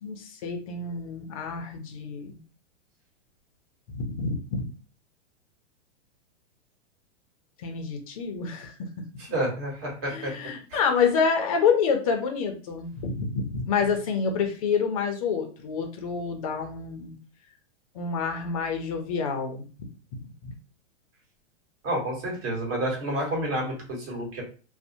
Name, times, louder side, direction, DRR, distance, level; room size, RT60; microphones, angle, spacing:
voice 1, 0.0-2.4 3.9-4.7 7.6-8.9 10.1-17.2 17.9-19.7 20.4-20.5, left 5 dB, 30° left, 4 dB, 0.4 m, -28 dB
voice 2, 9.2-10.3 10.7-10.8 21.8-24.4, right 1 dB, 55° right, -1 dB, 1.5 m, -29 dB
2.5 x 2.0 x 2.6 m, 0.38 s
hypercardioid pair, 150°, 36 cm